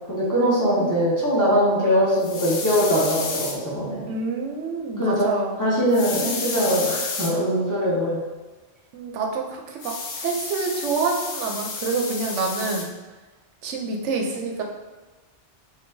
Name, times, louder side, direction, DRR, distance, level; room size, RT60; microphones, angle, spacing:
voice 1, 0.1-4.1 5.0-5.2 5.6-8.2, equal, 15° left, -9 dB, 1.1 m, -21 dB
sound 1, 2.2-3.5 5.9-7.3 9.8-12.8, left 4 dB, 85° left, 1.0 m, -31 dB
voice 2, 4.1-5.6 8.9-12.9 13.6-14.6, right 4 dB, 80° right, 1 dB, 0.9 m, -27 dB
4.5 x 2.7 x 2.6 m, 1.2 s
omnidirectional pair, 1.2 m